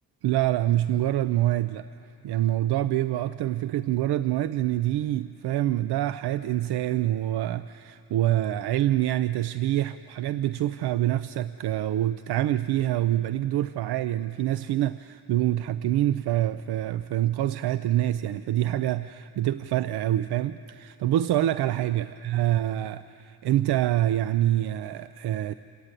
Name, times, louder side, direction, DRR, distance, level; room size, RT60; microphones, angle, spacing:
voice 1, 0.2-1.9 2.2-25.5, right 13 dB, 85° right, 13 dB, 0.5 m, -26 dB
28.0 x 15.0 x 9.0 m, 2.7 s
wide cardioid pair, 170°, 38 cm